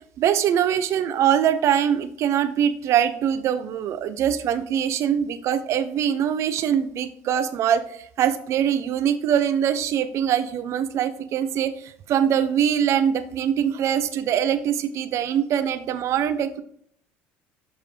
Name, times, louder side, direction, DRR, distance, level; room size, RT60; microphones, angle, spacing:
voice 1, 0.0-16.6, right 9 dB, 55° right, 12 dB, 0.7 m, -23 dB
6.8 x 5.7 x 3.3 m, 0.64 s
supercardioid pair, 85°, 6 cm